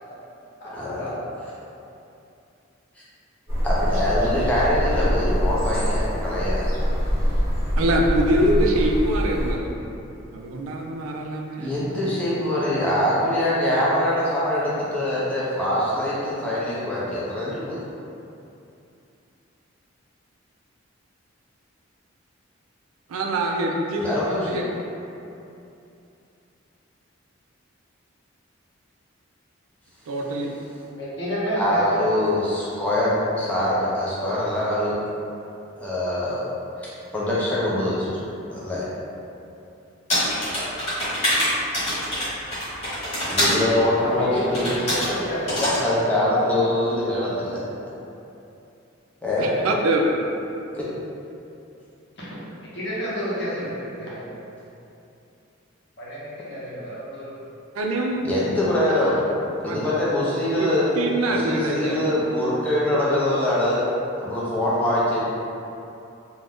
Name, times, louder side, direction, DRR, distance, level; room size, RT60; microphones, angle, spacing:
voice 1, 0.7-1.1 3.6-6.9 11.6-17.8 24.0-24.6 31.6-35.0 35.8-36.5 36.8-38.1 38.5-38.9 40.5-40.7 43.2-44.8 45.8-47.6 49.2-49.5 50.7-50.8 58.2-59.3 59.6-60.9 61.2-63.8 64.3-65.2, left 1 dB, 5° left, -8 dB, 0.4 m, -23 dB
sound 1, 3.5-9.5, equal, 30° right, 1.0 m, -24 dB
voice 2, 7.8-9.7 10.3-12.0 23.1-24.6 30.1-30.5 49.4-50.1 57.7-58.2 59.6-59.8 60.6-60.7 61.0-62.0, right 1 dB, 80° right, 1 dB, 0.3 m, -24 dB
voice 3, 31.0-32.0 44.0-45.7 46.1-46.6 52.2-52.4 52.7-54.3 56.0-56.2 56.5-57.4, equal, 55° left, -8 dB, 0.8 m, -30 dB
sound 2, 40.1-43.6 44.5-45.1 45.5-45.8, equal, 30° left, 1.0 m, -24 dB
2.5 x 2.2 x 3.4 m, 2.7 s
head